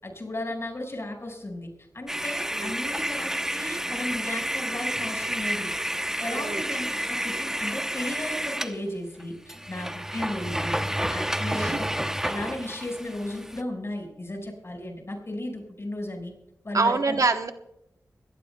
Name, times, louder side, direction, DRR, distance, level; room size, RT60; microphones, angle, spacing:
voice 1, 0.0-1.7 1.9-5.7 6.2-10.8 11.1-11.7 12.2-16.3 16.6-17.2, left 1 dB, 45° left, 3 dB, 5.5 m, -35 dB
sound 1, 2.1-8.8 9.2-9.3 9.5-13.6, equal, 10° right, 0.8 m, -30 dB
sound 2, 2.6-7.9, right 1 dB, 40° right, 1.9 m, -48 dB
voice 2, 11.5-11.8 16.7-17.5, right 4 dB, 65° right, 7 dB, 1.0 m, -25 dB
23.5 x 17.5 x 2.3 m, 0.80 s
wide cardioid pair, 55°, 6 cm